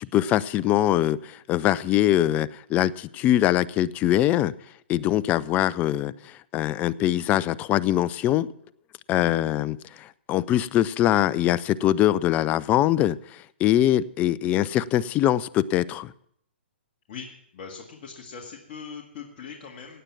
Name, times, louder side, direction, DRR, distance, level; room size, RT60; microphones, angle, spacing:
voice 1, 0.0-4.5 4.9-8.5 9.1-13.2 13.6-16.1, left 13 dB, 25° left, 19 dB, 0.4 m, -23 dB
voice 2, 17.5-20.0, left 6 dB, 45° left, 0 dB, 1.9 m, -40 dB
16.0 x 9.0 x 5.9 m, 0.69 s
hypercardioid pair, 130°, 6 cm